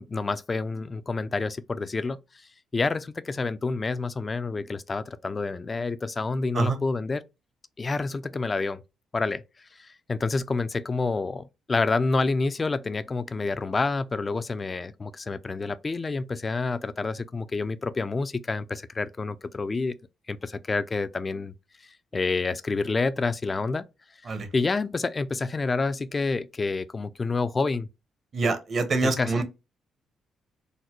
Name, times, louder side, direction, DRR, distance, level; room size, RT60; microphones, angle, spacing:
voice 1, 0.0-2.2 2.7-7.2 7.8-8.8 9.1-9.4 9.8-19.9 20.3-21.5 22.1-23.9 24.5-27.9 29.2-29.4, left 3 dB, 30° left, 0.3 m, -28 dB
voice 2, 28.3-29.4, right 3 dB, 45° right, 0.9 m, -25 dB
3.8 x 2.1 x 2.9 m
cardioid pair, 90°, 0 cm